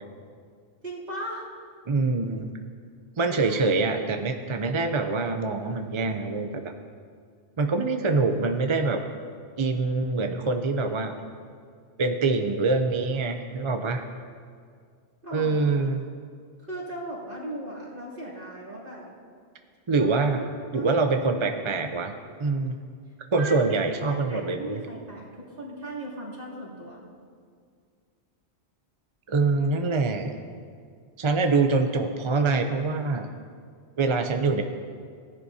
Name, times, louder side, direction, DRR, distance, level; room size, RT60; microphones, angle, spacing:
voice 1, 0.8-1.4 3.3-3.6 15.2-15.8 16.7-19.1 20.0-20.3 20.7-21.5 23.3-27.0, right 1 dB, 50° right, -8 dB, 3.2 m, -38 dB
voice 2, 1.9-2.5 3.2-6.7 7.6-9.0 9.6-11.1 12.0-14.0 15.3-16.0 19.9-20.4 20.7-22.1 22.4-22.8 23.3-24.8 29.3-30.3 31.2-33.3 34.0-34.6, right 3 dB, 35° right, 6 dB, 0.5 m, -25 dB
18.5 x 10.5 x 2.7 m, 2.1 s
omnidirectional pair, 1.1 m